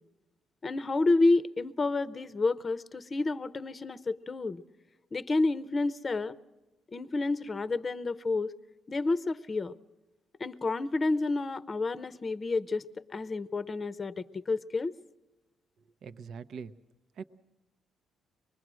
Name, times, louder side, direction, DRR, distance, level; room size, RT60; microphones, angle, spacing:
voice 1, 0.6-4.6 5.1-6.4 6.9-8.5 8.9-9.7 10.4-12.8 13.1-14.9, left 3 dB, 35° left, 15 dB, 0.7 m, -29 dB
voice 2, 16.0-16.7 17.2-17.3, right 6 dB, 65° right, 11 dB, 0.7 m, -42 dB
24.5 x 20.5 x 6.2 m, 1.1 s
cardioid pair, 90°, 0 cm